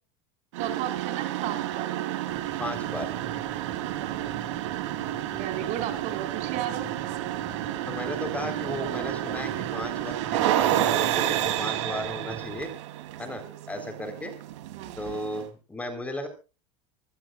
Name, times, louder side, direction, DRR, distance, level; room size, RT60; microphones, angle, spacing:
sound 1, 0.5-15.5, right 13 dB, 85° right, 3.1 m, -30 dB
voice 1, 0.6-1.9 5.3-6.9 14.8-15.0, right 11 dB, 50° right, 6 dB, 4.9 m, -34 dB
sound 2, 2.3-12.7, right 6 dB, 25° right, 1.9 m, -44 dB
voice 2, 2.6-3.1 7.9-12.8 13.2-14.4 15.0-16.3, left 1 dB, 10° left, 7 dB, 4.1 m, -35 dB
25.0 x 14.0 x 2.5 m, 0.33 s
supercardioid pair, 135°, 15 cm